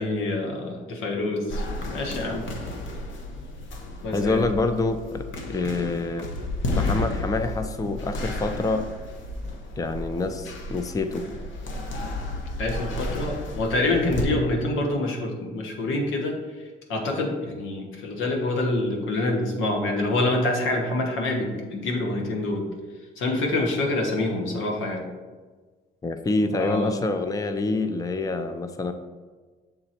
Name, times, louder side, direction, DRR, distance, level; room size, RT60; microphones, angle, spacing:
voice 1, 0.0-2.4 4.0-4.4 12.6-16.4 16.9-22.6 23.2-25.0 26.5-26.9, left 2 dB, 90° left, 1 dB, 1.2 m, -26 dB
sound 1, 1.5-14.2, left 2 dB, 70° left, 1.0 m, -32 dB
voice 2, 4.1-6.3 6.8-8.9 9.8-11.2 26.0-28.9, left 3 dB, 15° left, 8 dB, 0.4 m, -26 dB
6.7 x 3.8 x 4.4 m, 1.4 s
cardioid pair, 90°, 20 cm